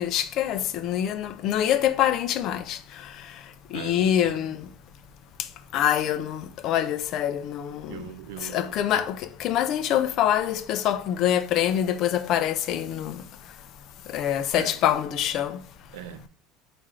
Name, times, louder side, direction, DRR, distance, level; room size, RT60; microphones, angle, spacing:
voice 1, 0.0-2.8 3.7-4.7 5.7-8.0 8.4-13.2 14.1-15.6, left 10 dB, 35° left, 0.4 m, -25 dB
voice 2, 3.7-4.6 7.9-8.8 14.6-14.8 15.9-16.3, right 10 dB, 90° right, 0.5 m, -40 dB
4.3 x 2.5 x 4.8 m
cardioid pair, 180°, 0 cm